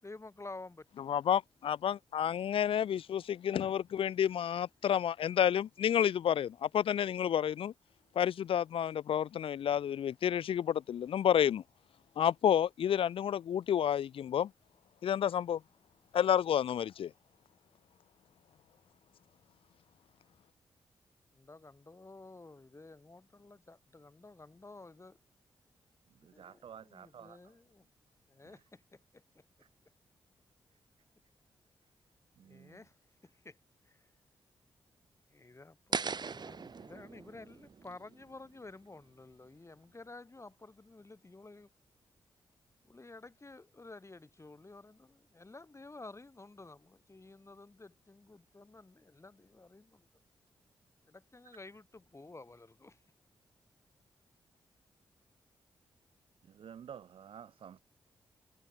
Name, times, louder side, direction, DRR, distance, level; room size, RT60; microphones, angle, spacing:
voice 1, 0.0-1.2 21.3-25.2 26.3-27.9 28.3-29.4 32.4-33.0 33.2-33.6 33.8-34.1 35.3-41.7 42.8-50.1 51.1-53.0, left 2 dB, 30° left, 4.0 m, -52 dB
voice 2, 1.1-7.7 8.1-11.6 12.2-14.5 15.0-15.6 16.1-17.1, left 9 dB, 70° left, 0.7 m, -30 dB
voice 3, 26.1-27.4 28.4-28.6 29.6-29.7 32.4-32.8 56.5-57.8, right 8 dB, 70° right, 1.1 m, -51 dB
sound 1, 35.9-38.9, right 5 dB, 50° right, 1.1 m, -40 dB
supercardioid pair, 45°, 10 cm